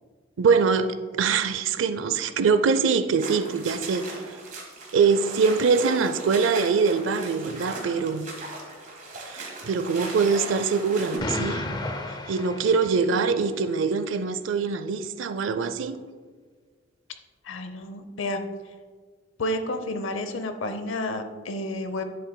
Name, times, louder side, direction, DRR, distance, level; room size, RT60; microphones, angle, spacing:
voice 1, 0.4-4.1 4.9-8.3 9.3-11.7 12.3-16.0, right 5 dB, 80° right, 0.5 m, -23 dB
sound 1, 3.2-11.2, right 2 dB, 45° right, 1.6 m, -38 dB
Explosion, 11.2-13.4, left 1 dB, 20° left, 0.5 m, -32 dB
voice 2, 17.4-18.4 19.4-22.0, left 1 dB, 85° left, 0.7 m, -30 dB
10.0 x 7.7 x 2.2 m
head